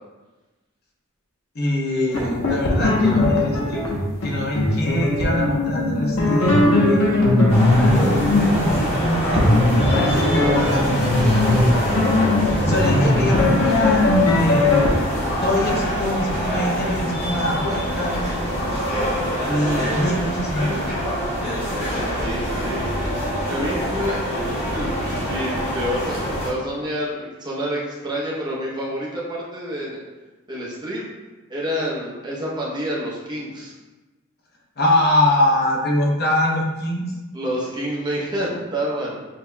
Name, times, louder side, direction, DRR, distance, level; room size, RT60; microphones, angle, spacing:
voice 1, 1.5-3.9 4.2-6.6 6.9-7.2 7.8-12.0 12.4-15.1 15.4-18.3 19.4-20.9 34.8-37.1, left 1 dB, 50° left, -2 dB, 0.7 m, -24 dB
sound 1, 2.1-14.9, left 2 dB, 75° left, 0.9 m, -19 dB
sound 2, 7.5-26.5, equal, 30° left, 1.2 m, -25 dB
voice 2, 19.6-19.9 22.1-22.8 23.5-30.0 30.5-31.1 31.5-33.7 37.3-39.3, equal, 20° right, -5 dB, 0.8 m, -28 dB
6.6 x 2.8 x 2.2 m, 1.2 s
head